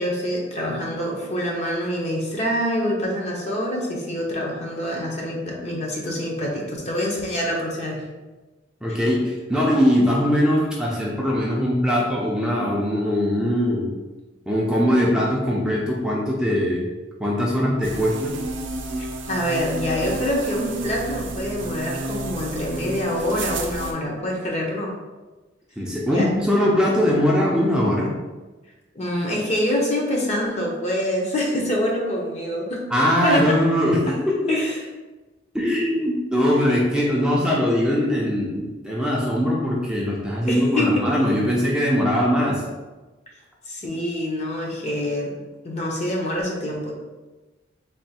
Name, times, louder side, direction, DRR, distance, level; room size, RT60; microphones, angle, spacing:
voice 1, 0.0-8.0 8.9-9.0 19.0-24.9 26.1-26.3 28.9-32.8 33.2-33.5 34.5-34.8 40.5-41.0 43.7-45.3 45.6-46.9, left 1 dB, 35° left, -2 dB, 0.8 m, -25 dB
voice 2, 8.8-13.9 14.5-16.9 17.2-18.3 25.8-28.1 32.9-34.4 35.5-42.6, equal, 5° right, -5 dB, 0.5 m, -21 dB
sound 1, 17.8-23.9, right 2 dB, 80° right, 0.5 m, -31 dB
3.4 x 2.4 x 4.1 m, 1.2 s
head